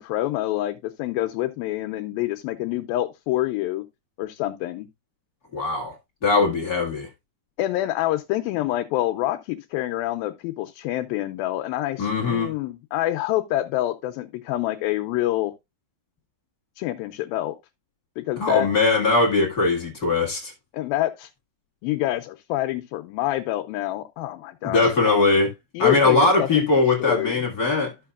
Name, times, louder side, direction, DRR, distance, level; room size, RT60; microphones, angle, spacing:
voice 1, 0.0-3.8 4.2-4.9 7.6-15.5 16.8-17.6 18.2-18.7 20.7-21.3 21.8-25.2 25.7-26.7 27.0-27.4, left 15 dB, 80° left, 2.4 m, -27 dB
voice 2, 5.5-5.9 6.2-7.1 12.0-12.5 18.4-20.5 24.6-25.5 25.8-27.9, left 3 dB, 40° left, 1.4 m, -20 dB
13.0 x 6.7 x 2.4 m
omnidirectional pair, 4.4 m